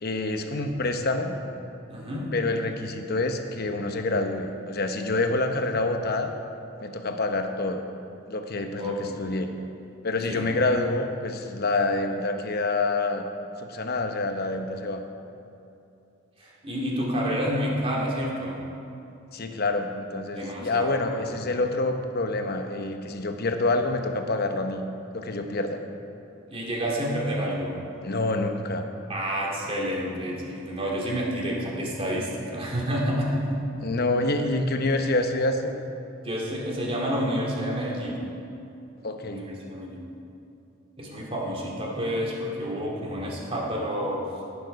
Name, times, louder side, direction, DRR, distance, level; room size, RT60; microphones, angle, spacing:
voice 1, 0.0-1.3 2.3-6.3 6.8-7.8 8.3-9.5 10.0-13.2 13.6-15.0 19.3-24.8 25.1-25.8 28.0-28.9 33.8-35.7 39.0-39.4, left 2 dB, 50° left, 6 dB, 0.9 m, -27 dB
voice 2, 1.9-2.3 8.8-9.2 10.3-10.5 16.4-18.7 20.3-21.3 26.5-27.8 29.1-33.6 36.2-38.3 39.3-40.0 41.0-44.2, equal, 30° right, -3 dB, 2.2 m, -29 dB
17.0 x 7.1 x 5.3 m, 2.7 s
head